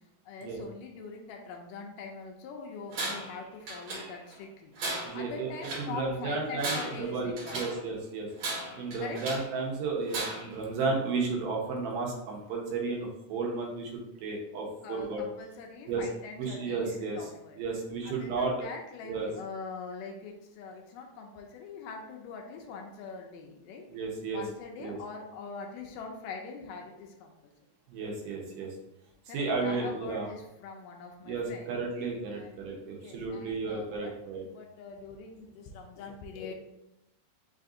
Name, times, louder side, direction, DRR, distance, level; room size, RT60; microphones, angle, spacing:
voice 1, 0.0-4.8 5.1-7.7 9.0-9.2 14.8-17.6 18.0-23.9 24.3-27.5 29.3-31.8 32.3-34.1 34.4-36.5, left 4 dB, 80° left, 2 dB, 2.2 m, -43 dB
Tools, 2.9-3.4 3.7-4.4 4.8-5.9 6.5-7.8 8.4-9.5 10.1-10.6, right 2 dB, 60° right, 2.0 m, -36 dB
voice 2, 5.0-8.3 8.7-15.2 15.9-16.0 16.4-17.2 17.6-18.7 19.0-19.3 23.9-24.4 24.8-25.0 27.9-28.7 29.3-30.3 31.2-34.4, right 4 dB, 75° right, -2 dB, 2.5 m, -33 dB
5.7 x 2.5 x 3.7 m, 0.84 s
omnidirectional pair, 4.0 m